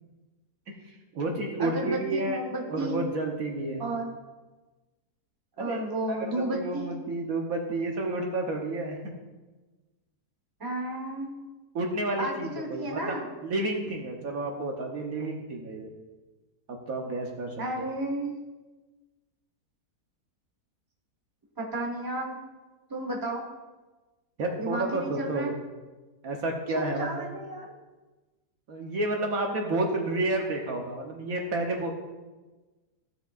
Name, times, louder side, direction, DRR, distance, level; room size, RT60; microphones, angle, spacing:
voice 1, 0.7-2.4 2.7-3.9 5.6-9.1 11.7-15.9 16.7-17.6 24.4-25.5 26.2-27.3 28.7-32.0, right 2 dB, 65° right, 1 dB, 1.4 m, -31 dB
voice 2, 1.6-3.0 3.8-4.1 5.6-6.9 10.6-11.3 12.2-13.2 17.6-18.4 21.6-22.4 22.9-23.4 24.6-25.5 26.7-27.7, right 1 dB, 15° right, 0 dB, 1.2 m, -32 dB
15.0 x 6.7 x 2.5 m, 1.2 s
omnidirectional pair, 1.7 m